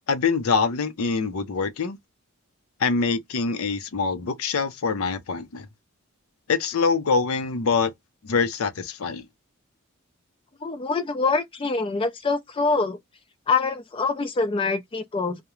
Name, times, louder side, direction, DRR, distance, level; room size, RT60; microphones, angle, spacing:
voice 1, 0.1-2.0 2.8-5.7 6.5-7.9 8.2-9.2, left 5 dB, 80° left, 0.5 m, -24 dB
voice 2, 10.6-13.0 13.5-15.4, left 4 dB, 25° left, 0.3 m, -25 dB
2.3 x 2.1 x 2.9 m
head